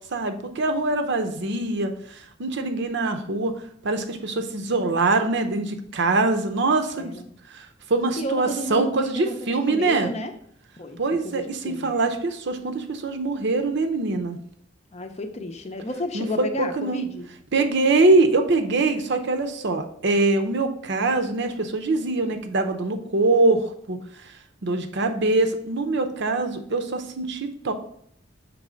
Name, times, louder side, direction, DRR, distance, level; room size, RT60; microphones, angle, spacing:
voice 1, 0.1-3.5 3.8-7.1 7.5-10.1 11.0-14.4 16.1-17.0 17.5-24.0 24.2-24.3 24.6-27.7, right 3 dB, 65° right, 7 dB, 0.7 m, -23 dB
voice 2, 7.0-7.3 8.2-10.3 10.8-11.0 11.2-11.9 14.9-17.3, left 1 dB, 35° left, 7 dB, 0.6 m, -32 dB
6.1 x 3.2 x 5.1 m, 0.66 s
head